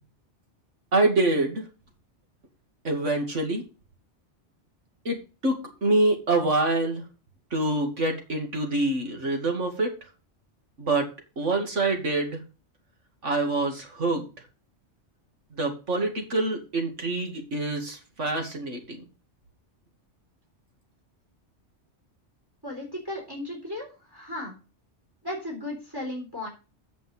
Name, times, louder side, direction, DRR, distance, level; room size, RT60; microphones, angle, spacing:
voice 1, 0.9-1.7 2.8-3.7 5.0-7.0 7.5-10.0 10.8-11.1 11.4-12.4 13.2-14.3 15.5-19.0, right 2 dB, 90° right, 3 dB, 2.7 m, -26 dB
voice 2, 22.6-24.5 25.2-26.5, left 1 dB, 20° right, -1 dB, 3.8 m, -35 dB
8.3 x 6.2 x 7.1 m, 0.33 s
omnidirectional pair, 1.2 m